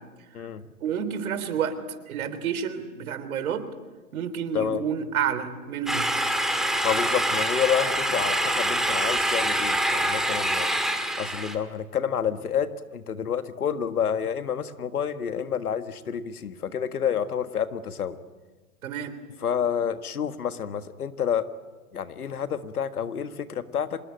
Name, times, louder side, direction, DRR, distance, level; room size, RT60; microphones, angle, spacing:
voice 1, 0.8-1.8 2.1-3.7 4.1-6.1 18.8-19.1, right 8 dB, 70° right, 11 dB, 3.5 m, -29 dB
sound 1, 5.9-11.5, right 1 dB, ahead, 2.3 m, -25 dB
voice 2, 6.8-10.7 11.2-18.2 19.4-21.5 21.9-24.0, left 8 dB, 85° left, 10 dB, 1.8 m, -29 dB
26.0 x 21.0 x 9.1 m, 1.3 s
hypercardioid pair, 125°, 44 cm